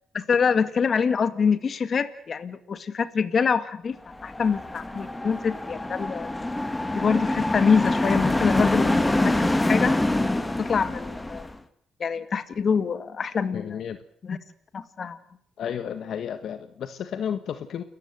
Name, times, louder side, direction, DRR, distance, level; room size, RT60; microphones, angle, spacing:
voice 1, 0.1-6.3 6.9-10.0 10.6-11.5 12.0-13.8 14.2-14.4 14.7-15.2, left 6 dB, 45° left, 13 dB, 1.9 m, -25 dB
sound 1, 4.1-11.6, left 1 dB, 15° left, 1.8 m, -25 dB
voice 2, 13.5-14.0 15.6-17.8, left 8 dB, 65° left, 10 dB, 1.5 m, -32 dB
29.5 x 14.5 x 8.0 m, 0.67 s
cardioid pair, 90°, 0 cm